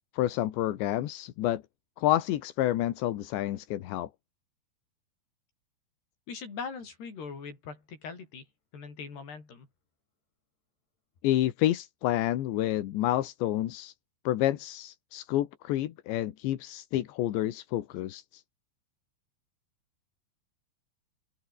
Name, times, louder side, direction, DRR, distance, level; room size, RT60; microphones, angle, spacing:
voice 1, 0.1-1.6 2.0-4.1 11.2-13.9 14.3-18.4, left 13 dB, 85° left, 3.8 m, -29 dB
voice 2, 6.3-8.4 8.7-9.7, left 5 dB, 70° left, 8.2 m, -41 dB
open air
omnidirectional pair, 5.0 m